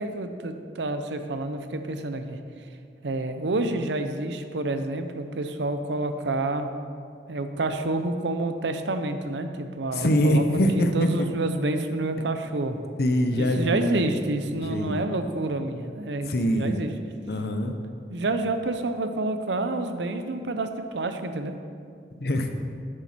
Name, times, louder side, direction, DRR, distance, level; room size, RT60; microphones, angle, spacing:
voice 1, 0.0-2.4 3.0-6.7 7.3-12.9 13.4-16.9 18.1-21.5, right 2 dB, 90° right, 8 dB, 0.7 m, -28 dB
voice 2, 9.9-11.2 13.0-14.0 14.5-15.0 16.2-16.8 17.3-17.8 22.2-22.5, equal, 60° left, 5 dB, 0.7 m, -24 dB
9.7 x 7.3 x 4.3 m, 2.2 s
head